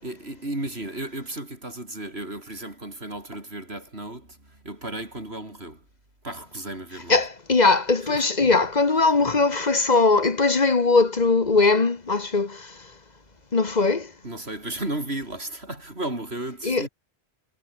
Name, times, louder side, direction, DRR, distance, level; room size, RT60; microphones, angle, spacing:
voice 1, 0.0-5.9 6.2-7.3 8.0-8.3 14.2-16.9, right 1 dB, 80° right, 6.7 m, -34 dB
voice 2, 7.1-12.6 13.5-14.1 16.6-16.9, left 3 dB, 45° left, 1.4 m, -20 dB
omnidirectional pair, 1.1 m